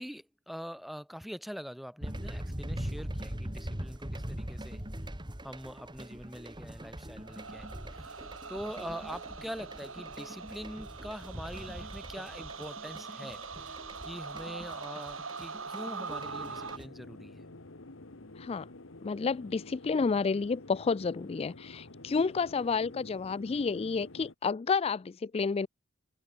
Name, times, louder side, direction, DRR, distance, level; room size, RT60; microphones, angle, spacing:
voice 1, 0.0-4.8 5.4-7.7 7.9-17.5 22.0-22.1, equal, ahead, 2.9 m, -44 dB
sound 1, 2.0-16.9, right 1 dB, 25° right, 3.1 m, -42 dB
sound 2, 7.2-16.8, right 4 dB, 80° right, 5.5 m, -43 dB
sound 3, 16.2-24.3, left 2 dB, 70° left, 1.6 m, -49 dB
voice 2, 18.4-18.7 19.0-25.7, left 5 dB, 30° left, 0.3 m, -30 dB
head